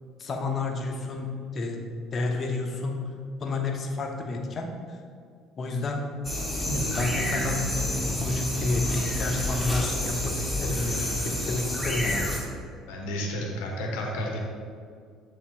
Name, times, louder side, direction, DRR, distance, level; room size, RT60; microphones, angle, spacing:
voice 1, 0.2-1.8 2.1-3.0 3.4-4.7 5.6-6.1 6.6-7.6 8.2-11.0 11.2-12.3, left 3 dB, 40° left, 3 dB, 1.0 m, -30 dB
sound 1, 6.2-12.4, left 1 dB, 5° left, 1.7 m, -28 dB
voice 2, 12.9-14.4, equal, 70° left, 0 dB, 1.1 m, -31 dB
7.2 x 3.6 x 5.1 m, 2.1 s
hypercardioid pair, 55°, 0 cm